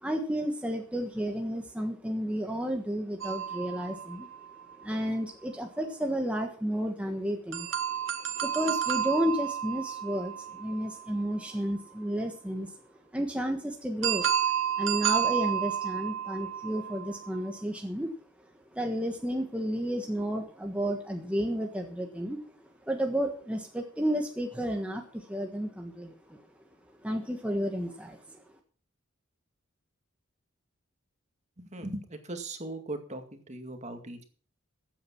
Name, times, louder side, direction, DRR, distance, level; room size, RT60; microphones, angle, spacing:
voice 1, 0.0-4.3 4.8-7.7 8.4-12.8 13.1-14.4 14.8-18.1 18.7-22.5 22.9-26.4 27.0-28.4, equal, 5° right, 2 dB, 1.4 m, -32 dB
sound 1, 3.2-4.9 7.5-11.4 14.0-17.5, right 9 dB, 70° right, 1.5 m, -31 dB
voice 2, 31.7-34.2, right 2 dB, 35° right, 6 dB, 2.1 m, -39 dB
15.0 x 8.7 x 5.9 m, 0.43 s
head